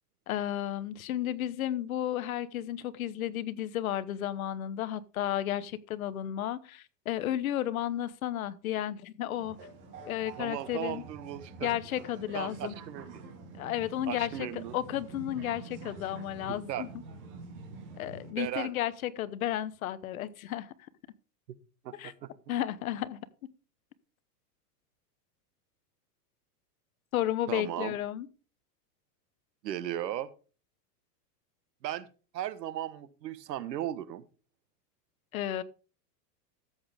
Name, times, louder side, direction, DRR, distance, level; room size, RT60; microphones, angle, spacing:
voice 1, 0.3-9.6 10.1-11.0 11.6-12.8 13.6-14.5 14.7-16.9 18.0-20.7 22.0-22.1 22.5-23.2 27.1-28.3 35.3-35.6, left 12 dB, 60° left, 1.0 m, -33 dB
sound 1, 9.3-18.3, right 3 dB, 25° right, 2.0 m, -47 dB
voice 2, 10.4-11.7 12.3-13.2 14.1-14.7 16.7-16.8 18.4-18.7 21.8-22.3 27.5-27.9 29.6-30.3 31.8-32.1 32.3-34.2, right 12 dB, 90° right, 1.3 m, -36 dB
13.5 x 8.2 x 3.5 m
supercardioid pair, 180°, 48 cm